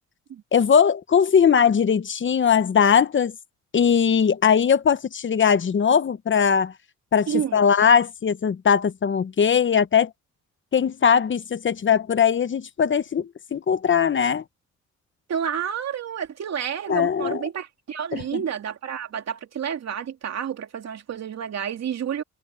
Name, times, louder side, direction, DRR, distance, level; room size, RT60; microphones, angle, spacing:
voice 1, 0.5-3.3 3.7-6.7 7.1-10.1 10.7-14.4 16.9-17.4 18.1-18.4, left 7 dB, 40° left, 1.1 m, -20 dB
voice 2, 7.3-7.6 15.3-22.2, right 8 dB, 60° right, 3.0 m, -30 dB
cardioid pair, 90°, 30 cm